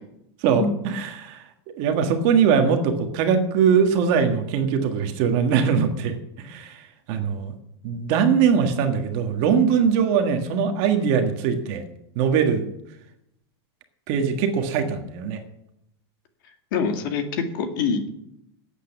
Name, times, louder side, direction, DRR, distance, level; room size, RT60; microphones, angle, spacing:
voice 1, 0.4-1.4 1.8-7.5 7.8-11.8 12.1-12.6 14.1-15.4, right 6 dB, 35° right, 6 dB, 1.6 m, -21 dB
voice 2, 16.7-18.1, left 5 dB, 50° left, 7 dB, 2.1 m, -25 dB
13.0 x 8.6 x 9.0 m, 0.80 s
supercardioid pair, 180°, 14 cm